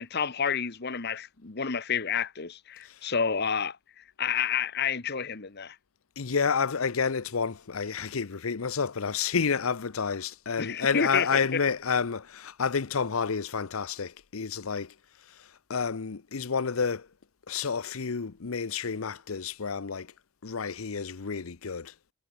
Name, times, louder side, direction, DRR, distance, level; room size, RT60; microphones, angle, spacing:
voice 1, 0.0-5.8 10.6-11.6, left 6 dB, 50° left, 1.3 m, -30 dB
voice 2, 6.2-14.9 15.4-17.1 17.5-20.1 20.4-21.9, left 5 dB, 90° left, 0.8 m, -30 dB
head